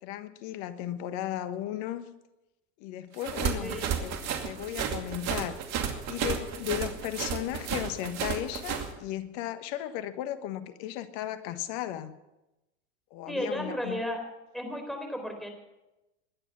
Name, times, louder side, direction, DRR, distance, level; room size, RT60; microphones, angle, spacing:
voice 1, 0.0-2.0 2.8-4.2 4.4-5.6 6.1-12.2 13.1-14.0, left 12 dB, 55° left, 12 dB, 1.4 m, -35 dB
sound 1, 3.2-8.9, right 7 dB, 45° right, 2.4 m, -32 dB
voice 2, 3.6-3.9 13.3-14.2 14.5-15.5, equal, ahead, 4 dB, 4.2 m, -34 dB
21.0 x 9.9 x 5.8 m, 0.97 s
hypercardioid pair, 90°, 36 cm